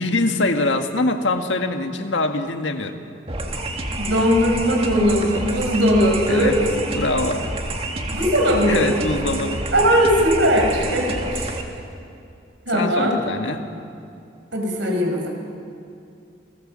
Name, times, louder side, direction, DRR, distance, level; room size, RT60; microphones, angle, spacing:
voice 1, 0.0-3.0 6.3-6.6 6.9-7.5 8.7-9.6 12.7-13.6, left 2 dB, 90° left, 5 dB, 1.8 m, -23 dB
sound 1, 3.3-11.6, right 2 dB, 30° right, 1.9 m, -28 dB
voice 2, 4.0-6.7 8.1-9.0 9.7-11.6 12.7-13.2 14.5-15.3, equal, 90° right, 2 dB, 5.4 m, -19 dB
28.5 x 19.5 x 7.6 m, 2.5 s
head